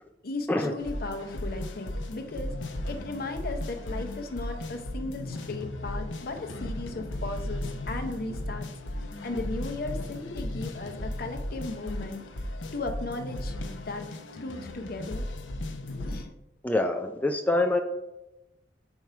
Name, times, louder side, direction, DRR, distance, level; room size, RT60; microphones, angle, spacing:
voice 1, 0.2-2.5 2.8-8.7 9.2-12.2 12.7-15.3 15.9-16.3, left 2 dB, 55° left, 5 dB, 0.8 m, -36 dB
sound 1, 0.8-16.2, left 1 dB, 90° left, 0.7 m, -36 dB
voice 2, 16.6-17.8, left 2 dB, 10° left, 4 dB, 0.4 m, -25 dB
5.3 x 4.5 x 4.6 m, 0.92 s
head